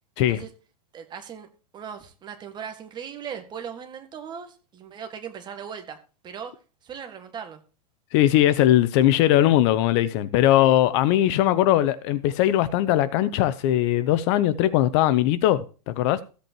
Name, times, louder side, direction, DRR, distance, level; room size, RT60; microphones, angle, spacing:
voice 1, 0.9-1.5 1.7-6.0 6.2-6.5 6.8-7.6 10.5-10.8, right 7 dB, 20° right, 1.8 m, -38 dB
voice 2, 8.1-16.2, left 13 dB, 45° left, 0.7 m, -20 dB
15.0 x 8.4 x 2.9 m
hypercardioid pair, 140°, 21 cm